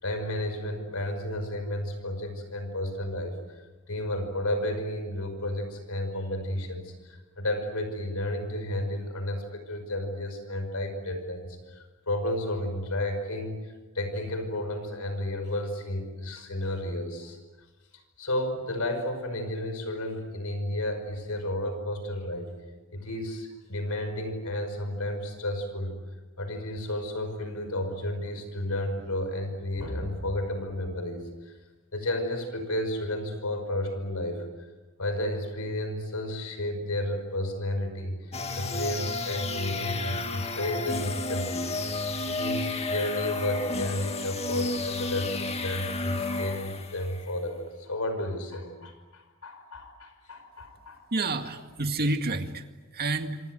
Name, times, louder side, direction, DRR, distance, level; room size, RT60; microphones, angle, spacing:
voice 1, 0.0-17.4 18.2-22.5 22.9-26.0 26.4-31.6 31.9-34.5 35.0-41.7 42.2-51.0, left 1 dB, 70° left, 8 dB, 5.5 m, -32 dB
sound 1, 38.3-47.2, left 2 dB, 30° left, 2.0 m, -32 dB
voice 2, 51.1-52.7 52.9-53.4, right 2 dB, 45° right, 6 dB, 2.0 m, -29 dB
26.5 x 26.5 x 7.9 m, 1.2 s
head